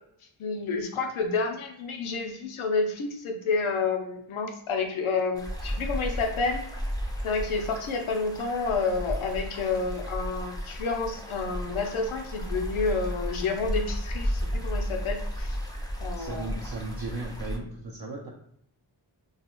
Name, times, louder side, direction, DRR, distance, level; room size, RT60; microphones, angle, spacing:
voice 1, 0.4-6.6 7.2-15.6 16.0-16.5, left 4 dB, 90° left, 3 dB, 0.6 m, -29 dB
sound 1, 5.3-17.6, equal, 10° left, 0.5 m, -33 dB
voice 2, 16.1-18.3, right 2 dB, 50° right, -3 dB, 0.6 m, -36 dB
2.4 x 2.3 x 2.9 m, 0.70 s
cardioid pair, 45°, 47 cm